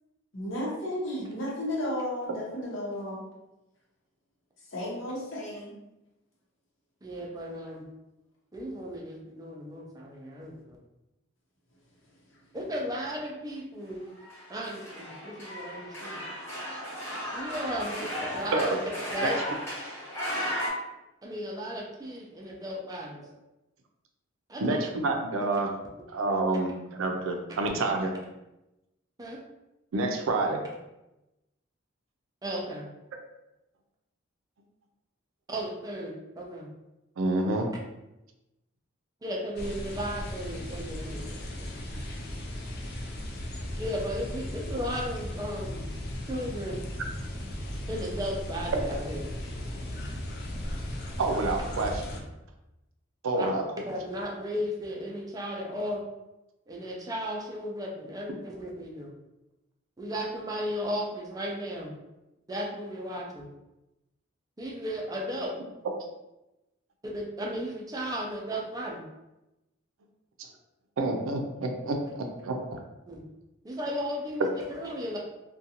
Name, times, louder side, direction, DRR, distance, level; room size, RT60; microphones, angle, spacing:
voice 1, 0.3-3.2 4.7-5.7 10.2-10.3 12.3-12.4, left 1 dB, 75° left, -4 dB, 0.8 m, -33 dB
voice 2, 7.0-7.9 8.5-10.8 12.5-14.1 14.5-16.2 17.3-18.7 19.1-19.4 21.2-23.2 24.5-24.8 29.2-29.4 32.4-32.9 35.5-36.7 39.2-41.7 43.8-45.8 46.3-46.9 47.9-49.2 53.3-53.5 53.9-56.0 56.7-59.1 60.0-62.0 62.5-63.5 64.6-65.5 67.0-69.1 73.1-73.2 73.6-75.2, equal, 20° right, -2 dB, 0.4 m, -35 dB
sound 1, 14.2-20.7, equal, 15° left, 0.7 m, -35 dB
voice 3, 24.6-25.7 26.1-28.1 29.9-30.7 37.2-37.7 51.2-52.2 53.2-53.6 71.0-72.8, right 2 dB, 80° right, 3 dB, 0.4 m, -28 dB
sound 2, 39.6-52.2, left 1 dB, 55° left, 0.5 m, -36 dB
2.5 x 2.2 x 2.7 m, 0.96 s
head